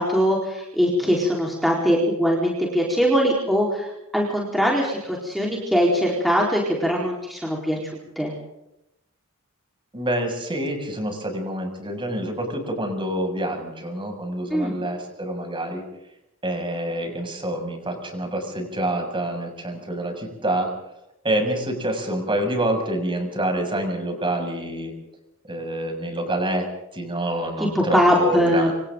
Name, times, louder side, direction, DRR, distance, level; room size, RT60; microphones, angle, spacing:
voice 1, 0.0-7.8 8.2-8.3 14.5-14.7 27.6-28.7, equal, ahead, -3 dB, 4.5 m, -21 dB
voice 2, 9.9-15.8 16.4-20.7 21.2-24.9 25.5-28.7, right 1 dB, 25° right, 3 dB, 7.1 m, -27 dB
28.5 x 27.5 x 4.0 m, 0.85 s
head